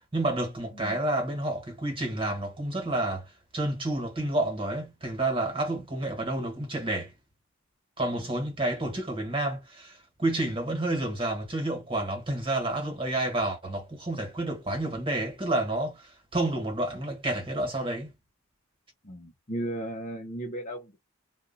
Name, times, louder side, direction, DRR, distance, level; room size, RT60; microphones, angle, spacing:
voice 1, 0.1-3.3 3.5-7.1 8.0-18.1, right 1 dB, 25° right, 1.5 m, -30 dB
voice 2, 19.0-21.0, right 1 dB, 40° left, 0.7 m, -36 dB
2.6 x 2.4 x 3.9 m
head